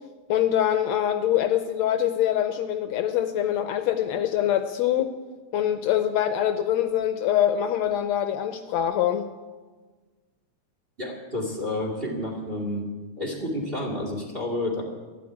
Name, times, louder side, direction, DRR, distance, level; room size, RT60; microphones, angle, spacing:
voice 1, 0.3-5.1 5.5-9.3, left 11 dB, 75° left, 8 dB, 1.7 m, -24 dB
voice 2, 11.0-12.9 13.2-14.8, left 1 dB, 20° right, 0 dB, 2.2 m, -30 dB
13.0 x 11.5 x 8.6 m, 1.4 s
omnidirectional pair, 3.4 m